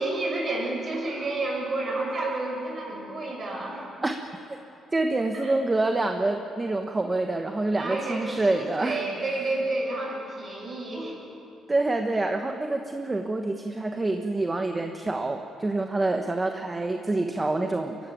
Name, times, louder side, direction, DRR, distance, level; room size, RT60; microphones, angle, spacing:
voice 1, 0.0-3.9 5.4-5.6 7.7-11.2, right 2 dB, 40° right, -1 dB, 7.4 m, -30 dB
voice 2, 4.9-9.0 11.7-18.0, right 2 dB, 20° right, 5 dB, 1.2 m, -27 dB
24.0 x 14.5 x 9.3 m, 2.8 s
cardioid pair, 90°, 0 cm